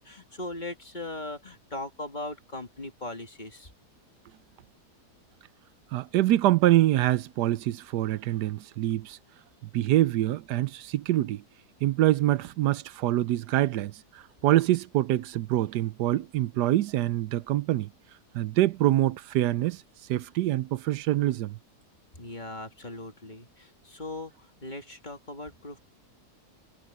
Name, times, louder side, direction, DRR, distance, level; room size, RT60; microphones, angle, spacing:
voice 1, 0.0-3.7 22.2-25.8, left 2 dB, 25° left, 2.4 m, -39 dB
voice 2, 5.9-9.2 9.7-11.4 11.8-17.9 18.3-19.8 20.1-21.6, right 14 dB, 90° right, 1.2 m, -25 dB
omnidirectional pair, 1.8 m